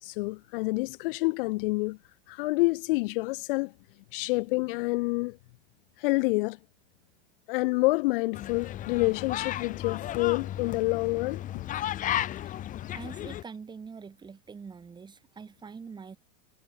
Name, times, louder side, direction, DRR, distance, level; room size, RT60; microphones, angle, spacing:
voice 1, 0.0-2.0 2.3-3.7 4.1-5.4 6.0-6.6 7.5-11.7 12.1-12.2, left 24 dB, 50° left, 1.5 m, -28 dB
sound 1, 8.3-13.4, left 12 dB, 20° left, 1.7 m, -34 dB
voice 2, 12.9-16.2, right 5 dB, 10° right, 5.7 m, -44 dB
supercardioid pair, 160°, 36 cm